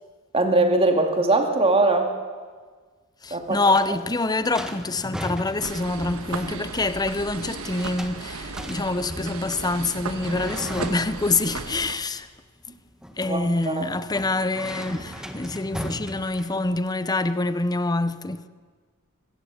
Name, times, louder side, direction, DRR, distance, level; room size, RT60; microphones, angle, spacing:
voice 1, 0.3-2.1 3.3-3.6 13.3-13.9, right 2 dB, 25° right, 2.5 m, -21 dB
voice 2, 3.2-12.3 13.2-18.5, left 2 dB, 20° left, 0.7 m, -26 dB
sound 1, 3.3-16.9, equal, 5° right, 1.5 m, -38 dB
sound 2, 5.6-12.0, right 4 dB, 80° right, 1.4 m, -35 dB
24.5 x 15.0 x 8.7 m
head